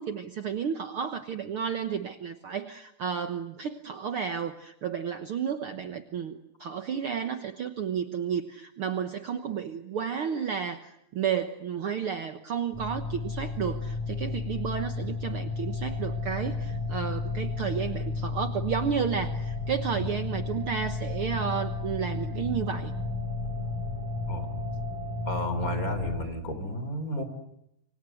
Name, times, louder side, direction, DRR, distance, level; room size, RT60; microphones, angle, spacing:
voice 1, 0.0-22.9, right 7 dB, 55° right, 8 dB, 1.7 m, -32 dB
sound 1, 12.7-26.2, left 3 dB, 55° left, 6.7 m, -33 dB
voice 2, 25.3-27.2, equal, 30° left, 9 dB, 3.8 m, -32 dB
29.0 x 24.5 x 7.9 m, 0.80 s
omnidirectional pair, 3.4 m